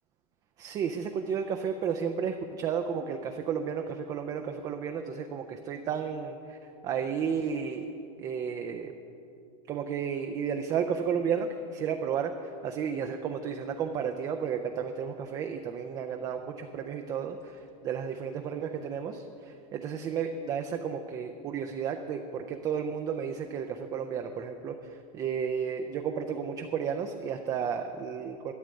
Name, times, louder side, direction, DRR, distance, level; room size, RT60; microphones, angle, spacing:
voice 1, 0.6-7.9 8.2-8.9 9.7-28.5, right 7 dB, 20° right, 5 dB, 0.4 m, -33 dB
12.5 x 6.4 x 9.5 m, 2.7 s
supercardioid pair, 165°, 19 cm